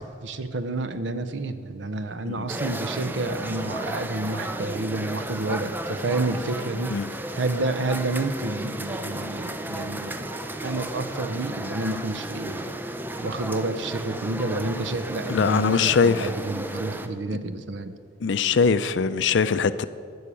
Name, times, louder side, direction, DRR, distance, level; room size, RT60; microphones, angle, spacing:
voice 1, 0.0-7.0 7.3-10.2 10.6-12.7 13.2-18.0, right 2 dB, 80° right, 0.7 m, -29 dB
sound 1, 2.5-17.1, right 1 dB, 10° right, 0.5 m, -33 dB
voice 2, 15.3-16.3 18.2-19.8, left 5 dB, 80° left, 0.5 m, -22 dB
12.0 x 6.4 x 8.4 m
head